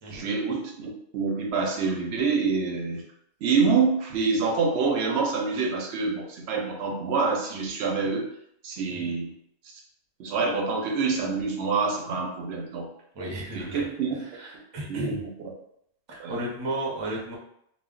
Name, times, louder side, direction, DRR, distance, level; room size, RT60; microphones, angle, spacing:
voice 1, 0.1-3.0 3.4-8.3 8.6-9.3 10.2-12.9 13.5-14.4 14.9-15.2 16.2-16.4, right 4 dB, 65° right, 2 dB, 0.7 m, -26 dB
voice 2, 13.1-13.9 14.2-15.2 16.1-17.3, right 1 dB, 30° right, -3 dB, 0.5 m, -34 dB
2.2 x 2.1 x 3.6 m, 0.72 s
omnidirectional pair, 1.3 m